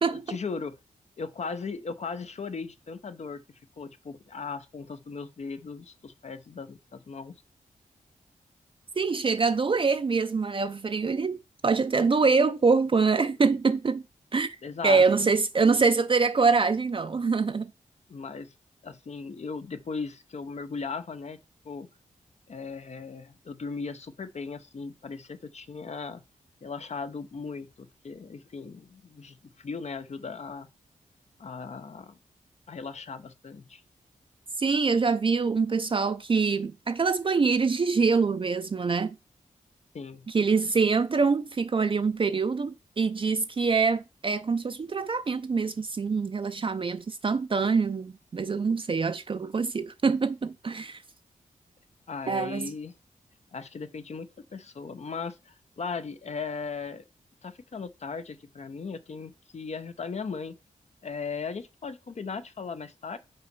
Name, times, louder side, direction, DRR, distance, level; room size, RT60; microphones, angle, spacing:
voice 1, 0.1-0.7 1.2-3.4 3.8-7.3 14.6-15.0 18.1-18.5 18.8-21.4 21.6-21.9 22.5-26.2 26.6-30.7 31.4-32.2 32.7-33.8 39.9-40.3 52.1-52.9 53.5-57.0 57.4-60.5 61.0-63.2, left 5 dB, 50° left, 0.7 m, -37 dB
voice 2, 9.0-11.4 11.6-14.0 14.3-14.6 14.8-17.7 34.6-39.2 40.3-51.0 52.3-52.7, right 4 dB, 40° right, 0.5 m, -25 dB
5.6 x 4.1 x 5.2 m
cardioid pair, 65°, 14 cm